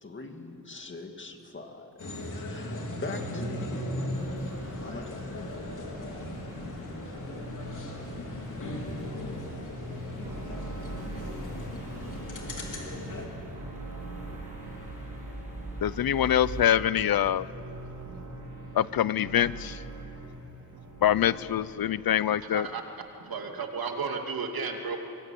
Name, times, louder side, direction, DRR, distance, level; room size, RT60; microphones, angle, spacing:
voice 1, 0.0-4.0 4.8-5.7, left 3 dB, 30° left, 4 dB, 2.2 m, -42 dB
sound 1, 2.0-13.3, left 1 dB, 55° left, 4.0 m, -37 dB
sound 2, 4.1-16.6, right 2 dB, 20° right, 6.4 m, -45 dB
sound 3, 6.2-21.5, right 1 dB, 50° right, 3.8 m, -43 dB
voice 2, 15.8-17.4 18.8-19.8 21.0-22.7, left 10 dB, 70° left, 17 dB, 0.6 m, -24 dB
voice 3, 22.4-25.0, right 5 dB, 70° right, 3 dB, 2.5 m, -34 dB
24.0 x 23.0 x 8.5 m, 2.9 s
wide cardioid pair, 160°, 38 cm